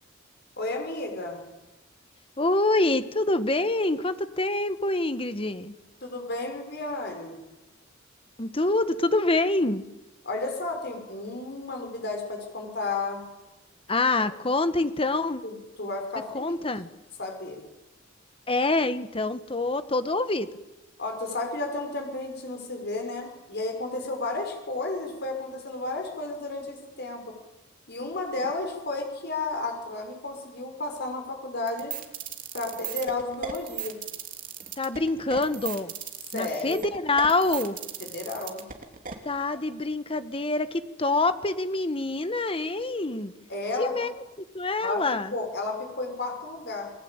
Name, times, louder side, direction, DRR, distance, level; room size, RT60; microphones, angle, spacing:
voice 1, 0.6-1.4 6.0-7.4 10.2-13.2 14.2-14.3 15.4-16.7 17.2-17.6 21.0-27.3 27.9-32.0 32.5-34.0 36.3-36.9 38.0-38.7 43.5-43.9 44.8-46.9, left 2 dB, 55° left, 3 dB, 6.4 m, -32 dB
voice 2, 2.4-5.7 8.4-9.8 13.9-15.4 16.3-16.9 18.5-20.5 34.8-35.9 36.3-37.8 39.2-43.3 43.8-44.1 44.5-45.3, left 2 dB, 30° left, 11 dB, 1.3 m, -26 dB
sound 1, 31.7-39.1, right 9 dB, 45° right, 3.1 m, -36 dB
29.5 x 20.5 x 8.9 m, 0.99 s
head